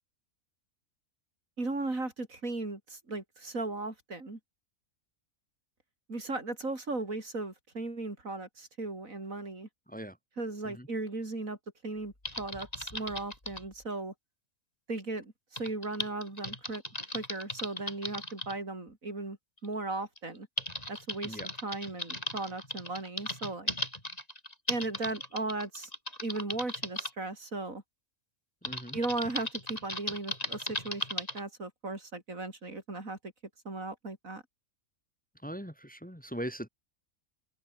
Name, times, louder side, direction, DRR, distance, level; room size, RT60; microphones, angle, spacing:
voice 1, 1.6-4.4 6.1-9.7 10.4-11.6 11.8-14.1 14.9-16.8 17.1-19.4 19.6-20.5 20.9-23.7 24.7-25.9 26.2-27.8 28.9-33.2 33.6-34.4, right 2 dB, 75° right, 4.8 m, -37 dB
Typing, 12.2-13.7 15.6-18.5 19.6-19.7 20.2-27.1 28.6-31.4, left 1 dB, 25° left, 6.5 m, -37 dB
voice 2, 28.6-29.0 35.4-36.7, equal, 5° left, 3.0 m, -40 dB
omnidirectional pair, 1.4 m